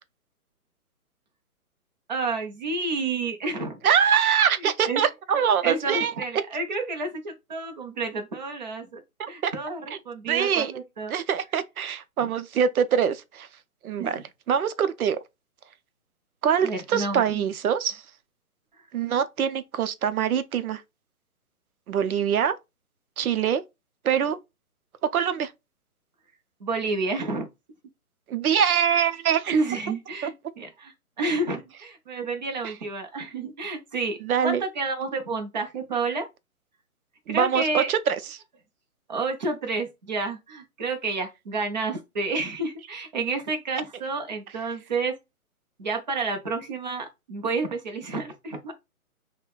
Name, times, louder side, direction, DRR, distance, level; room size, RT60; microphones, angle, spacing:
voice 1, 2.1-3.8 4.6-5.0 5.6-9.0 9.3-11.1 12.2-12.3 14.0-14.2 16.6-17.4 26.6-27.5 29.5-36.2 37.3-37.9 39.1-45.1 45.8-48.7, right 3 dB, 30° right, 0.6 m, -30 dB
voice 2, 3.8-6.1 9.2-9.5 10.3-10.7 11.1-13.5 13.8-14.2 14.5-15.2 16.4-18.0 18.9-20.8 21.9-22.6 23.2-23.6 24.0-24.4 25.1-25.5 28.3-29.6 30.2-30.3 32.6-32.7 34.2-34.6 37.3-38.2, right 8 dB, 70° right, 0.6 m, -24 dB
6.0 x 2.1 x 2.3 m
hypercardioid pair, 155°, 45 cm